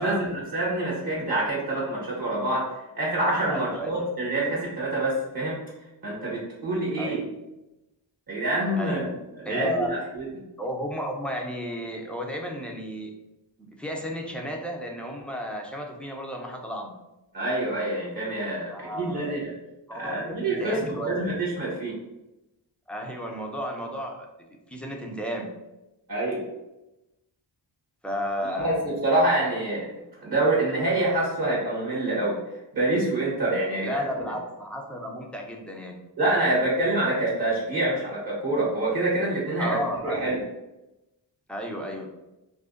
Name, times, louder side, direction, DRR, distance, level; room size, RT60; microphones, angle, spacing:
voice 1, 0.0-2.7 2.9-5.6 6.0-7.2 8.3-9.1 9.4-10.2 17.3-19.5 19.9-21.9 26.1-26.4 28.6-29.8 30.2-32.4 32.7-34.0 36.2-39.8 40.0-40.4, right 2 dB, 50° right, -6 dB, 1.1 m, -26 dB
voice 2, 3.5-4.1 7.0-7.3 8.8-9.0 9.5-9.9 10.6-13.1 13.6-16.9 18.7-19.5 19.9-21.3 22.9-24.3 24.7-25.5 28.0-28.8 33.8-36.0 39.6-40.3 41.5-42.1, equal, 5° left, 0 dB, 0.4 m, -33 dB
2.6 x 2.2 x 2.4 m, 0.96 s
cardioid pair, 55°, 46 cm